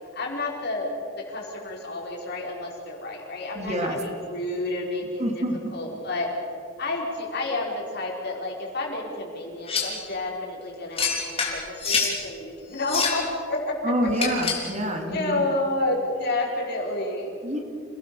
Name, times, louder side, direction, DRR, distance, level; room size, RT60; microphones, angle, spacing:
voice 1, 0.1-0.9 1.2-5.4 5.7-6.3 6.8-14.4 15.1-17.4, left 2 dB, 55° left, -1 dB, 4.9 m, -30 dB
voice 2, 3.5-4.0 5.2-5.6 13.8-15.4 17.4-17.6, equal, 35° right, 3 dB, 2.7 m, -27 dB
sound 1, 9.7-10.0 11.0-12.2 12.8-13.3 14.1-14.7, left 5 dB, 30° left, 3.7 m, -26 dB
27.0 x 18.0 x 7.0 m, 2.5 s
head